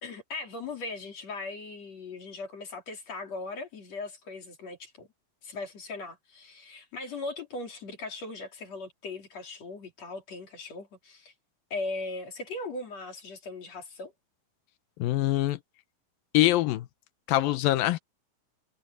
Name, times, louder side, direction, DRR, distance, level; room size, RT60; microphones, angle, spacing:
voice 1, 0.0-5.1 5.4-11.3 11.7-14.1, left 3 dB, 50° left, 4.3 m, -39 dB
voice 2, 15.0-15.6 16.3-16.9 17.3-18.0, left 16 dB, 85° left, 2.7 m, -24 dB
omnidirectional pair, 4.0 m